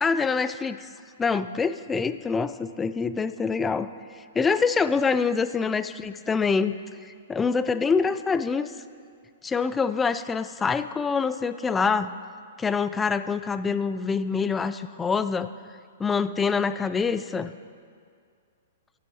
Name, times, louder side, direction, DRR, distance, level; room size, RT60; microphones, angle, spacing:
voice 1, 0.0-0.9 1.2-3.9 4.3-6.7 7.0-8.7 9.4-12.1 12.6-15.5 16.0-17.5, left 5 dB, 15° left, 13 dB, 0.3 m, -25 dB
7.7 x 7.0 x 6.3 m, 2.1 s
hypercardioid pair, 125°, 0 cm